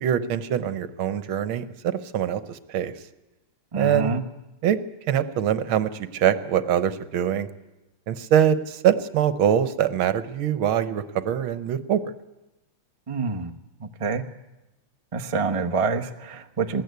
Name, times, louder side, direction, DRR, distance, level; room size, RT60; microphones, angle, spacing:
voice 1, 0.0-2.9 3.7-4.2 4.6-4.8 5.1-7.5 8.1-12.0, right 9 dB, 70° right, 14 dB, 1.7 m, -23 dB
voice 2, 3.7-4.2 13.1-13.5 13.8-14.2 15.1-16.8, right 4 dB, 40° right, 4 dB, 0.5 m, -26 dB
20.5 x 15.5 x 9.4 m, 1.0 s
omnidirectional pair, 2.4 m